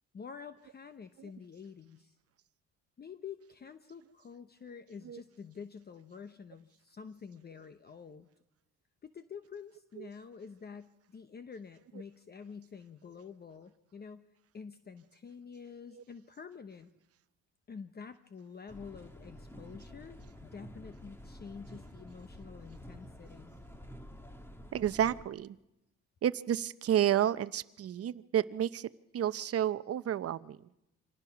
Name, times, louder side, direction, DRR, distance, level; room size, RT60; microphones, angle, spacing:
voice 1, 0.1-2.2 3.0-8.3 9.0-14.3 14.5-16.9 17.7-23.5, left 6 dB, 30° left, 10 dB, 0.8 m, -48 dB
sound 1, 18.7-25.2, equal, 10° left, 1.6 m, -50 dB
voice 2, 24.7-25.6 26.2-30.6, right 10 dB, 50° right, 16 dB, 0.7 m, -31 dB
26.0 x 18.0 x 5.8 m, 0.89 s
cardioid pair, 100°, 31 cm